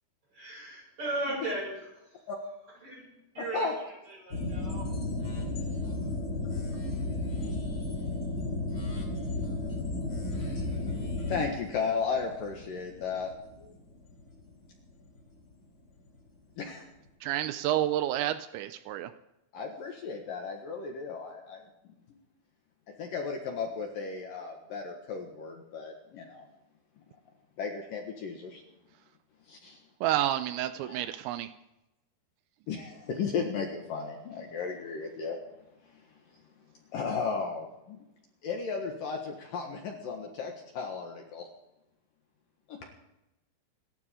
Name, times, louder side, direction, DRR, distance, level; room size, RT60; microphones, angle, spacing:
voice 1, 0.3-1.8 2.8-3.0 3.3-3.7 4.2-4.9, right 2 dB, 30° right, -2 dB, 7.2 m, -35 dB
voice 2, 3.4-3.7 10.4-10.7 11.3-13.3 13.6-13.7 16.6-16.9 19.5-21.6 23.0-26.5 27.6-28.6 29.5-29.8 30.8-31.0 32.7-35.4 35.9-36.0 36.9-38.0 38.4-41.5 42.7-42.8, left 5 dB, 60° left, 2 dB, 2.7 m, -35 dB
sound 1, 4.3-15.2 15.5-15.6, left 2 dB, 25° left, 3.1 m, -34 dB
voice 3, 17.2-19.1 30.0-31.5, right 12 dB, 85° right, 10 dB, 2.9 m, -29 dB
27.0 x 12.5 x 3.7 m, 0.91 s
omnidirectional pair, 5.2 m